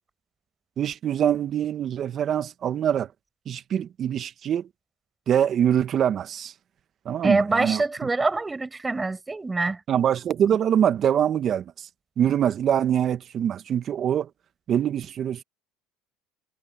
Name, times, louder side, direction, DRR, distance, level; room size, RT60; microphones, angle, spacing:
voice 1, 0.8-3.1 3.4-4.7 5.3-6.5 7.0-7.8 9.9-11.9 12.2-14.3 14.7-15.4, right 9 dB, 45° right, 1.5 m, -24 dB
voice 2, 7.2-9.8, right 3 dB, 15° right, 7.5 m, -25 dB
supercardioid pair, 95°, 0 cm